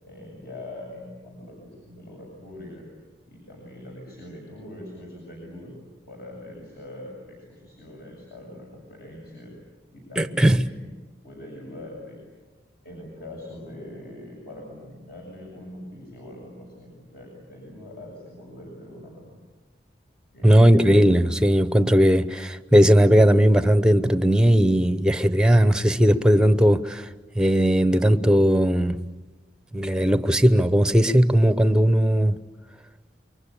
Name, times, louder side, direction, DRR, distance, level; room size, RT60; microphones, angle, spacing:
voice 1, 0.0-2.8 3.3-5.7 6.1-9.5 9.9-10.9 11.2-12.2 12.8-19.3 20.3-20.6, left 1 dB, 55° left, 7.4 m, -42 dB
voice 2, 10.2-10.6 20.4-27.1 27.4-29.1 29.7-32.4, equal, 5° right, 0.8 m, -18 dB
28.5 x 24.0 x 8.4 m
head